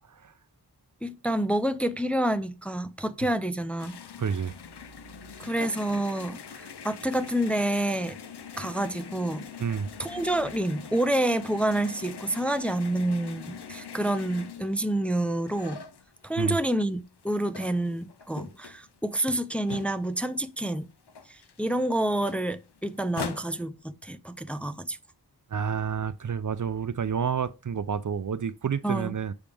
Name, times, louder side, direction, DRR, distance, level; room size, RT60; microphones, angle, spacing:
voice 1, 1.0-4.0 5.4-8.2 8.6-9.5 10.0-15.8 16.2-20.9 21.3-25.0 28.8-29.2, right 1 dB, 5° left, 0.5 m, -28 dB
sound 1, 3.8-16.6 17.0-20.4 20.7-20.8 21.1-23.4, left 7 dB, 85° left, 0.6 m, -43 dB
voice 2, 4.2-4.5 9.6-9.9 16.4-16.6 25.5-29.3, right 7 dB, 50° right, 0.5 m, -29 dB
7.1 x 5.1 x 3.4 m
wide cardioid pair, 65°, 39 cm